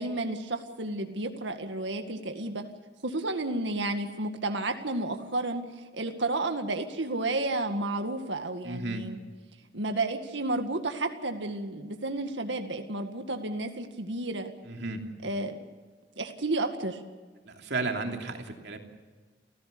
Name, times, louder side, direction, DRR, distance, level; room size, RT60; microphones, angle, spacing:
voice 1, 0.0-2.6 3.0-9.2 9.7-14.5 15.2-15.6 16.2-17.0, right 2 dB, 80° right, 5 dB, 2.0 m, -31 dB
voice 2, 8.6-9.0 14.7-15.0 17.4-18.8, right 3 dB, 65° right, 3 dB, 3.1 m, -33 dB
29.5 x 15.5 x 6.9 m, 1.4 s
head